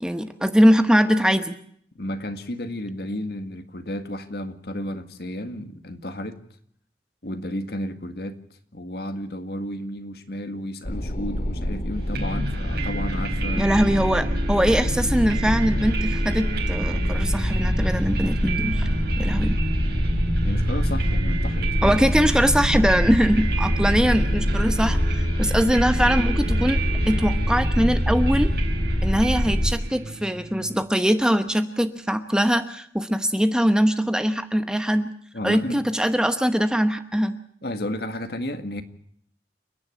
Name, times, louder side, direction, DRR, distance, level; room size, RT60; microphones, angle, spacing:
voice 1, 0.0-1.5 13.6-18.9 19.2-19.6 21.8-26.8 27.1-28.5 29.0-35.1 35.4-37.4, equal, 5° right, 9 dB, 1.0 m, -22 dB
voice 2, 2.0-6.4 7.2-8.4 8.7-13.7 20.4-22.0 35.3-35.8 37.6-38.8, left 1 dB, 60° left, 8 dB, 1.9 m, -32 dB
sound 1, 10.8-29.7, equal, 45° left, 2.3 m, -24 dB
sound 2, 12.1-30.8, right 2 dB, 55° right, 5.4 m, -32 dB
29.5 x 10.5 x 10.0 m, 0.65 s
head